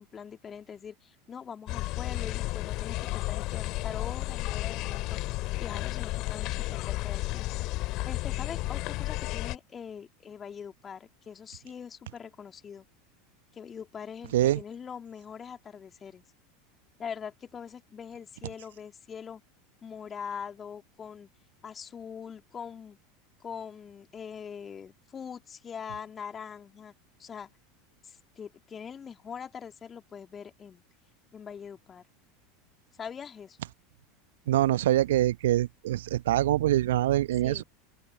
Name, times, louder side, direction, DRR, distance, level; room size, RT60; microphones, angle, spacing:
voice 1, 0.0-5.2 5.6-7.5 8.1-12.8 13.5-16.2 17.0-19.4 19.8-21.3 21.6-23.0 23.4-26.9 27.2-27.5 28.0-30.8 31.3-32.0 33.0-33.6 37.4-37.6, left 7 dB, 25° left, 2.9 m, -42 dB
sound 1, 1.7-9.6, left 19 dB, 45° left, 2.5 m, -32 dB
voice 2, 34.5-37.6, right 14 dB, 65° right, 0.9 m, -24 dB
open air
figure-of-eight pair, 80°, 0 cm